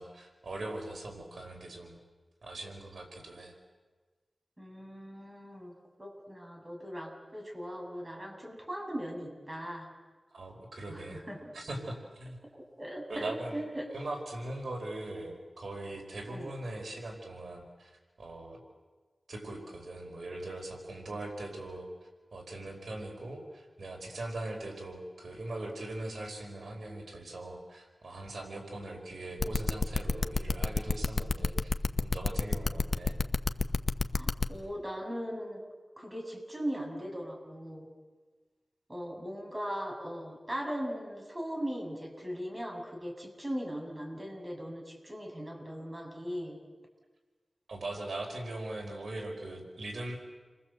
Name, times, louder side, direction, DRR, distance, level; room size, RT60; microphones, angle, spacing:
voice 1, 0.0-2.0 2.4-3.5 10.3-11.2 11.5-12.4 13.1-13.6 13.9-18.6 19.3-21.9 22.3-31.7 32.0-33.2 47.7-50.2, right 2 dB, 80° right, 2 dB, 4.7 m, -40 dB
voice 2, 4.6-5.7 6.0-9.9 10.9-11.5 12.5-13.9 16.3-16.5 34.1-35.6 36.0-37.9 38.9-46.6, equal, 25° right, 1 dB, 6.6 m, -39 dB
sound 1, 29.4-34.5, left 3 dB, 65° left, 1.1 m, -28 dB
29.5 x 23.5 x 8.0 m, 1.4 s
wide cardioid pair, 80°, 0 cm